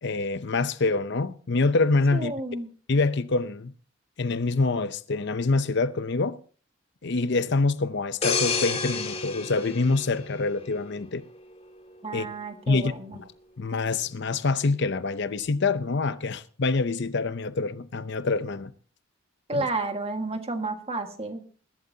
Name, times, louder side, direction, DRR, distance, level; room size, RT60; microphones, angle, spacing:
voice 1, 0.0-2.3 2.9-3.7 4.2-6.4 7.0-11.2 12.1-12.3 12.7-12.9 13.2-13.3 13.6-18.7 19.5-19.7, left 3 dB, 60° left, 0.7 m, -25 dB
voice 2, 2.1-2.7 12.0-13.2 19.5-21.4, right 2 dB, 30° right, 1.7 m, -31 dB
sound 1, 8.2-10.9 11.4-11.6, left 4 dB, 35° left, 2.1 m, -30 dB
22.0 x 12.0 x 2.8 m
head